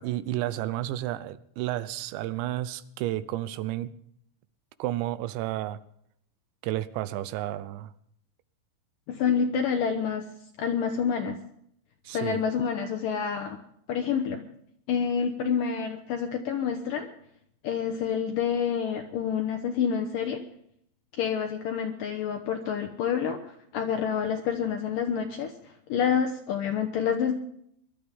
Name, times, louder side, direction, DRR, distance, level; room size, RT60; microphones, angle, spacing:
voice 1, 0.0-3.9 4.8-5.8 6.6-7.9 12.1-12.4, right 14 dB, 85° right, 15 dB, 3.0 m, -31 dB
voice 2, 9.1-10.3 10.6-11.4 12.1-13.6 13.9-14.4 14.9-17.1 17.6-20.4 21.2-23.4 23.7-25.5 25.9-27.3, left 7 dB, 80° left, 5 dB, 1.9 m, -28 dB
23.5 x 12.0 x 3.5 m, 0.69 s
omnidirectional pair, 5.3 m